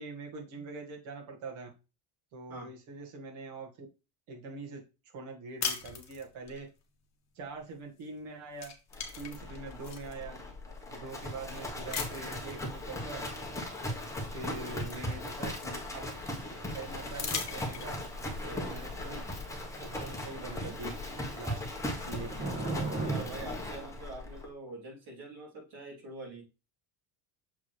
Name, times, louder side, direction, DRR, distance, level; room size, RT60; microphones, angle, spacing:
voice 1, 0.0-1.7 2.3-3.9 4.3-4.8 5.1-6.7 7.4-8.7 9.2-10.4 10.9-13.2 14.3-16.0 16.7-18.0 18.4-19.2 19.8-20.9 21.3-22.8, right 3 dB, 65° right, 0 dB, 2.2 m, -43 dB
sound 1, 5.6-6.6 8.0-8.2 8.5-10.2 10.8-10.9 11.9-12.5 14.0-14.1 14.4-16.0 17.1-18.2, left 6 dB, 35° left, 1.4 m, -39 dB
Livestock farm animals working animals, 8.9-24.5, left 1 dB, 5° left, 1.2 m, -38 dB
Thunder / Rain, 16.1-23.2, right 2 dB, 15° right, 1.8 m, -42 dB
voice 2, 23.0-26.4, right 2 dB, 45° right, -2 dB, 3.5 m, -44 dB
6.9 x 4.7 x 3.3 m, 0.30 s
cardioid pair, 145°, 50 cm